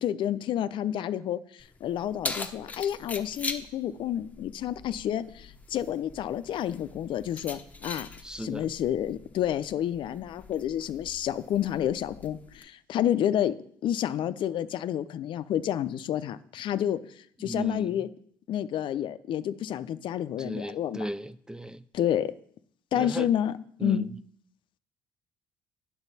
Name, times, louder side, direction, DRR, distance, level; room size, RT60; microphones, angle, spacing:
voice 1, 0.0-8.1 8.4-13.5 13.8-18.1 18.5-21.1 21.9-22.3 22.9-24.1, left 10 dB, 60° left, 13 dB, 0.5 m, -29 dB
Keys jangling, 1.6-12.6, left 3 dB, 15° left, 0.9 m, -42 dB
voice 2, 8.2-8.7 17.4-18.0 20.4-21.8 22.9-23.3 23.8-24.1, equal, 10° right, 15 dB, 0.4 m, -35 dB
8.9 x 6.9 x 4.1 m, 0.63 s
supercardioid pair, 80°, 9 cm